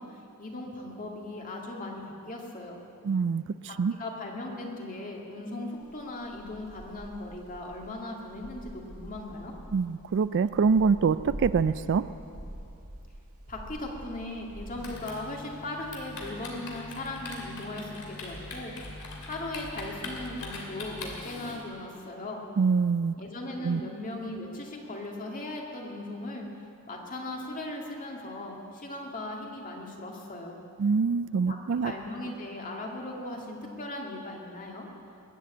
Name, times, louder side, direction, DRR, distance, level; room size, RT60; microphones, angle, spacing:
voice 1, 0.0-2.8 3.7-9.5 13.5-17.9 18.2-22.4 23.2-26.5 26.9-30.6 31.5-31.6 31.8-34.9, left 2 dB, 40° left, 0 dB, 2.2 m, -38 dB
voice 2, 3.0-3.4 3.8-3.9 9.7-12.0 22.6-23.1 23.6-23.8 30.8-31.9, right 5 dB, 55° right, 15 dB, 0.4 m, -24 dB
sound 1, 5.8-14.9, right 1 dB, 90° right, 2.0 m, -45 dB
Typing, 14.8-21.6, left 2 dB, 90° left, 2.7 m, -41 dB
21.5 x 7.7 x 8.5 m, 2.7 s
head